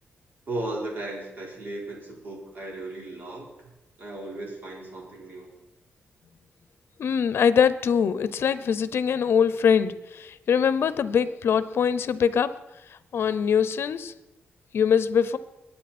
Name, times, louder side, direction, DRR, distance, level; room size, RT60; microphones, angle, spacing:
voice 1, 0.5-3.7 4.0-5.6, right 2 dB, 50° right, -2 dB, 4.1 m, -36 dB
voice 2, 7.0-12.5 13.1-14.1 14.7-15.4, left 7 dB, 70° left, 15 dB, 0.7 m, -23 dB
22.0 x 9.1 x 4.3 m, 0.95 s
wide cardioid pair, 135°, 4 cm